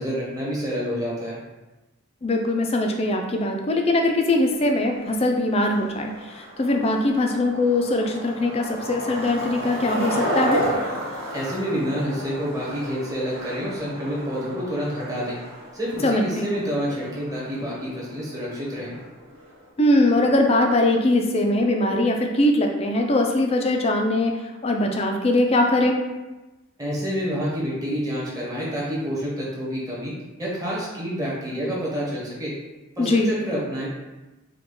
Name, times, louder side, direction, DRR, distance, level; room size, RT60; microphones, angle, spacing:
voice 1, 0.0-1.4 11.3-15.4 15.7-18.9 26.8-30.1 30.4-32.5 33.0-33.9, equal, 15° right, -6 dB, 1.0 m, -28 dB
voice 2, 2.2-10.6 16.0-16.5 19.8-24.4 24.6-26.0 33.0-33.3, left 1 dB, 30° left, 3 dB, 0.4 m, -21 dB
Skateboard, 4.5-19.7, equal, 85° right, 1.4 m, -33 dB
4.9 x 2.3 x 3.8 m, 1.1 s
head